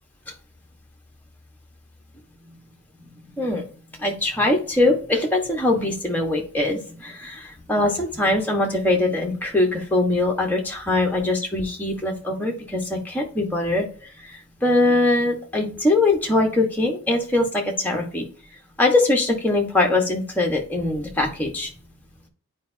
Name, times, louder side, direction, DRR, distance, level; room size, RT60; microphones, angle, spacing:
voice 1, 3.4-3.7 4.0-18.3 18.8-21.7, left 2 dB, 10° left, 1 dB, 1.2 m, -22 dB
10.5 x 4.7 x 2.7 m, 0.42 s
head